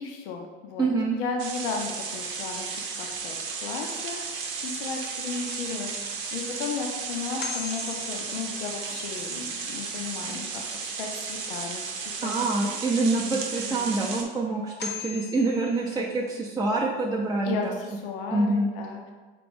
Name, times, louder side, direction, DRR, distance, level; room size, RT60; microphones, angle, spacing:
voice 1, 0.0-0.9 1.1-3.3 3.6-4.2 4.6-11.8 12.2-12.3 13.0-13.4 13.7-14.2 17.4-19.1, left 4 dB, 75° left, 2 dB, 0.6 m, -34 dB
voice 2, 0.8-1.2 12.2-17.7 18.3-18.7, right 3 dB, 15° right, -3 dB, 0.5 m, -26 dB
sound 1, 1.4-14.2, right 5 dB, 65° right, 0.7 m, -34 dB
sound 2, 5.9-6.0 6.6-6.7 7.4-9.0 14.1-14.2 14.8-16.4, left 6 dB, 35° left, 0.7 m, -39 dB
5.0 x 2.5 x 3.5 m, 1.4 s
hypercardioid pair, 70°, 29 cm